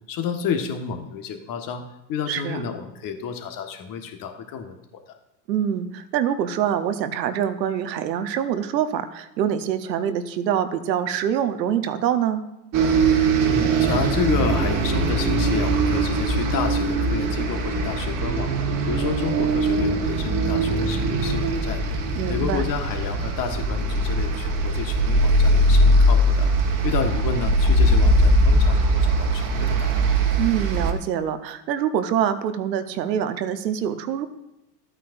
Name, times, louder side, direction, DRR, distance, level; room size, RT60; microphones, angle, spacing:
voice 1, 0.1-4.8 13.4-18.5 18.9-21.8 22.3-26.5 26.8-30.1, left 6 dB, 40° left, 5 dB, 1.5 m, -30 dB
voice 2, 2.3-2.6 5.5-12.4 22.2-22.6 30.4-34.3, right 9 dB, 85° right, 10 dB, 1.0 m, -25 dB
sound 1, 12.7-30.9, right 1 dB, 40° right, 1.5 m, -21 dB
13.5 x 9.0 x 2.6 m, 0.94 s
hypercardioid pair, 100°, 49 cm